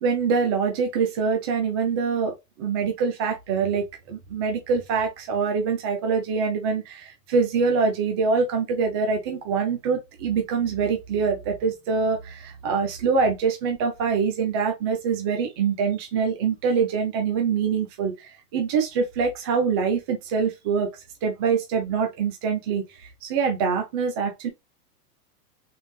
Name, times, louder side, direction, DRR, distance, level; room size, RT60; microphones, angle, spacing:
voice 1, 0.0-20.9 21.2-24.5, right 5 dB, 20° right, 0.3 m, -24 dB
3.9 x 3.6 x 3.2 m
supercardioid pair, 145°, 48 cm